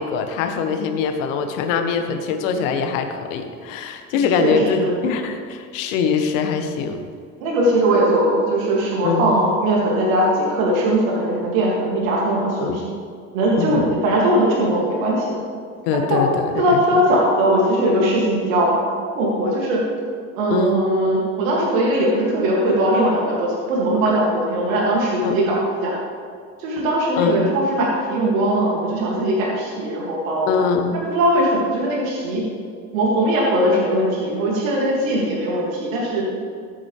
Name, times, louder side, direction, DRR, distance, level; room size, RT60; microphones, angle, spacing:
voice 1, 0.0-7.0 9.0-9.3 12.6-12.8 13.6-14.0 15.9-16.8 20.5-20.8 25.2-25.4 27.2-27.5 30.5-31.0, left 5 dB, 70° left, 7 dB, 1.1 m, -23 dB
voice 2, 4.4-4.9 7.4-12.8 13.3-15.4 16.1-16.2 16.6-18.8 19.2-19.8 20.4-25.9 26.6-30.5 30.9-32.4 32.9-36.2, right 1 dB, 75° right, -3 dB, 2.2 m, -20 dB
13.5 x 8.5 x 3.2 m, 2.2 s
hypercardioid pair, 60°, 41 cm